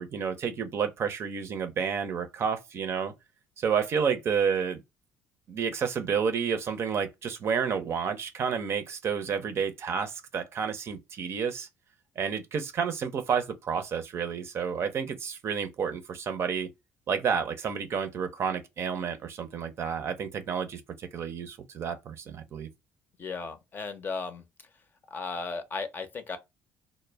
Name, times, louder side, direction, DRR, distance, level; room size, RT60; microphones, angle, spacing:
voice 1, 0.0-3.1 3.6-4.8 5.5-11.7 12.2-16.7 17.1-22.7, right 6 dB, 50° right, 0.5 m, -30 dB
voice 2, 23.2-24.4 25.1-26.4, left 4 dB, 35° left, 0.6 m, -35 dB
2.1 x 2.0 x 3.2 m
cardioid pair, 95°, 6 cm